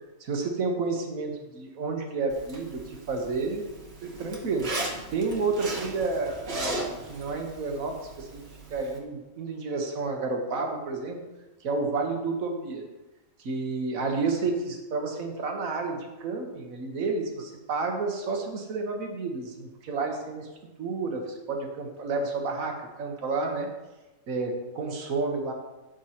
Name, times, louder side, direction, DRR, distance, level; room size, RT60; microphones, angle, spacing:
voice 1, 0.2-3.6 4.0-4.7 5.1-8.3 8.7-11.2 11.6-12.8 13.4-20.5 20.8-23.7 24.3-25.5, right 3 dB, 90° right, 2 dB, 1.5 m, -30 dB
Zipper (clothing), 2.3-9.0, right 2 dB, 45° right, 1.5 m, -37 dB
12.5 x 5.1 x 2.9 m, 1.1 s
omnidirectional pair, 1.4 m